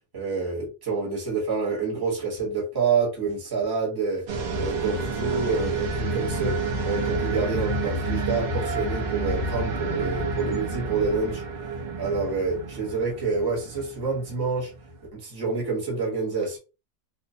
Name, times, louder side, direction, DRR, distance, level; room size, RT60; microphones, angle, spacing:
voice 1, 0.1-4.2 4.6-6.5 6.8-11.4 12.0-14.7 15.1-16.6, right 4 dB, 15° right, -3 dB, 0.9 m, -27 dB
sound 1, 4.3-15.1, right 3 dB, 65° right, 0.5 m, -29 dB
2.9 x 2.0 x 2.6 m, 0.30 s
omnidirectional pair, 1.7 m